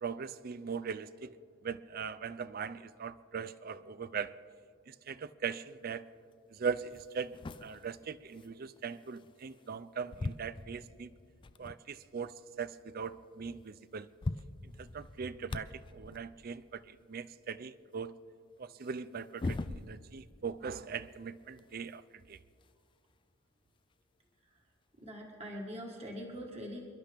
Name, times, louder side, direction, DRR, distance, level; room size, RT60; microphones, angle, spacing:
voice 1, 0.0-1.4 1.6-4.4 4.9-6.0 6.5-11.1 11.6-14.1 14.6-18.1 18.6-22.0 22.3-22.4, right 6 dB, 45° right, 16 dB, 0.4 m, -40 dB
sound 1, 6.3-6.4 6.8-9.8 10.1-11.9 12.4-12.5 12.7-12.8 13.7-13.8 14.0-16.3 18.8-20.3 20.6-22.9 23.9-24.0 25.0-25.1, left 2 dB, 25° left, 0.3 m, -43 dB
voice 2, 25.0-26.8, equal, 30° right, -1 dB, 1.6 m, -43 dB
27.5 x 11.5 x 3.5 m, 2.2 s
head